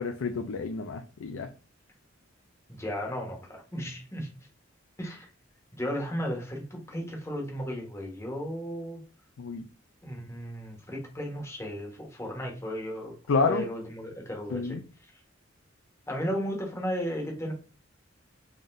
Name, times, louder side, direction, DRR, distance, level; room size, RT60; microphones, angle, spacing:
voice 1, 0.0-1.5 9.4-9.7 13.3-13.7 14.5-14.8, left 4 dB, 80° left, 0.4 m, -29 dB
voice 2, 2.8-4.3 5.0-5.3 5.7-9.0 10.0-13.1 13.4-14.8 16.1-17.5, equal, 15° left, 1.2 m, -34 dB
3.8 x 3.5 x 2.5 m
head